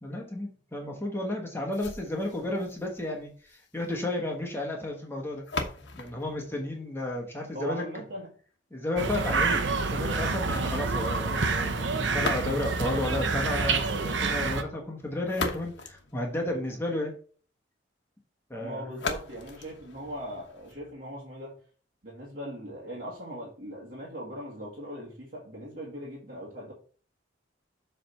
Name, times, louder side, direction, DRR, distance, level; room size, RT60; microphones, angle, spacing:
voice 1, 0.0-5.4 5.9-7.8 8.7-17.1 18.5-18.9, left 1 dB, 15° left, 0 dB, 1.2 m, -32 dB
sound 1, 1.7-7.7 12.1-12.9 15.0-16.9 18.9-20.9, left 4 dB, 70° left, 1.1 m, -39 dB
voice 2, 7.5-8.3 18.6-21.6 22.0-26.7, equal, 50° right, -5 dB, 1.7 m, -39 dB
sound 2, 9.0-14.6, right 4 dB, 80° right, 0.9 m, -28 dB
7.5 x 3.4 x 5.6 m, 0.43 s
head